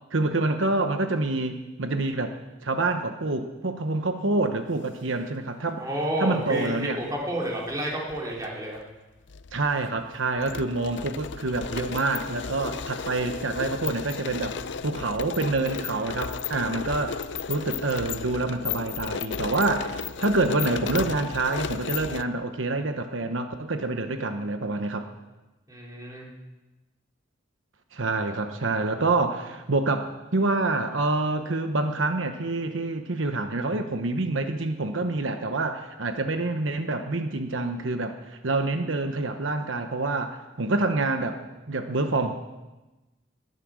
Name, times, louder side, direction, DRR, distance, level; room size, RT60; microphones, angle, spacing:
voice 1, 0.1-5.9 6.2-7.0 9.5-14.5 14.8-17.2 17.5-25.1 27.9-41.4 41.7-42.3, right 2 dB, 80° right, 7 dB, 1.1 m, -27 dB
voice 2, 5.8-8.8 25.7-26.3, right 1 dB, 20° right, -3 dB, 3.6 m, -30 dB
sound 1, 6.4-6.7 7.7-8.5 8.8-8.9 9.3-22.2, left 6 dB, 65° left, 0.6 m, -34 dB
20.0 x 11.0 x 6.3 m, 1.1 s
head